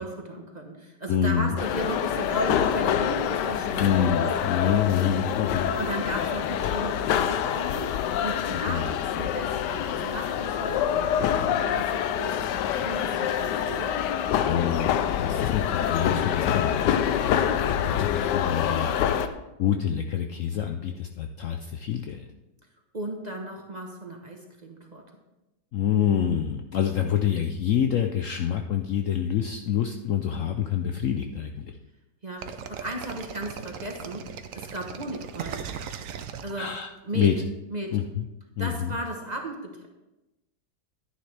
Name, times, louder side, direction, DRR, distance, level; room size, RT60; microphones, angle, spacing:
voice 1, 0.0-4.3 5.8-14.0 22.9-25.1 32.2-35.7 36.4-36.7 37.0-37.3 37.7-38.0 38.6-39.9, right 1 dB, 30° right, 1 dB, 1.0 m, -35 dB
voice 2, 1.1-1.5 3.8-5.7 8.7-9.0 14.4-19.3 19.6-22.3 25.7-31.7 36.6-37.3 37.9-38.3 38.6-38.9, left 9 dB, 65° left, 5 dB, 0.8 m, -27 dB
sound 1, 1.6-19.3, left 9 dB, 85° left, 1.2 m, -26 dB
sound 2, 32.4-37.2, right 7 dB, 60° right, 0.9 m, -38 dB
11.5 x 9.9 x 3.4 m, 1.0 s
omnidirectional pair, 1.8 m